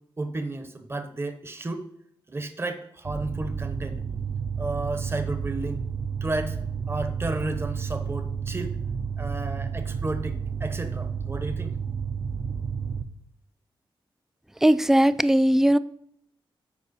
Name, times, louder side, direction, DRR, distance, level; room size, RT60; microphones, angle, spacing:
voice 1, 0.2-1.9 2.3-4.0 4.6-5.8 6.2-6.6 6.9-8.8 9.2-11.8, right 2 dB, 25° right, 0.9 m, -32 dB
sound 1, 3.1-13.0, right 6 dB, 45° right, 0.6 m, -31 dB
voice 2, 14.6-15.8, right 1 dB, 5° right, 0.3 m, -19 dB
12.0 x 4.6 x 4.2 m
cardioid pair, 80°, 9 cm